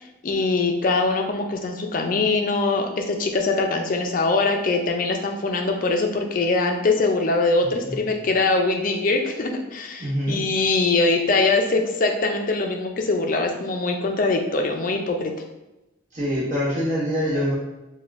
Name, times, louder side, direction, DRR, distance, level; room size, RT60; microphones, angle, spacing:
voice 1, 0.2-15.3, left 3 dB, 40° left, 4 dB, 0.4 m, -22 dB
voice 2, 10.0-10.4 16.1-17.5, equal, 35° right, -7 dB, 1.0 m, -24 dB
5.1 x 2.3 x 2.4 m, 0.98 s
head